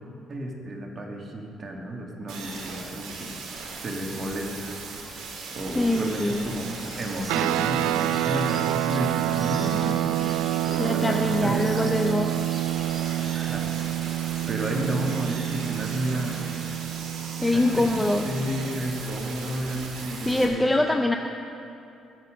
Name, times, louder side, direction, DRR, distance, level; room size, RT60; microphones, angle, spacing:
voice 1, 0.3-5.2 5.5-6.7 7.0-12.4 13.2-13.7 14.0-14.1 14.5-16.8 17.4-20.7, right 1 dB, 40° right, 0 dB, 2.4 m, -32 dB
sound 1, 2.3-20.5, right 4 dB, 70° right, 2.2 m, -38 dB
voice 2, 5.7-6.4 10.8-12.3 17.4-18.2 20.2-21.2, left 1 dB, 10° left, 4 dB, 0.7 m, -23 dB
sound 2, 6.8-13.4, equal, 5° right, 3.4 m, -45 dB
sound 3, 7.3-19.0, right 14 dB, 85° right, 0.3 m, -28 dB
21.5 x 7.4 x 5.3 m, 2.7 s
supercardioid pair, 65°, 0 cm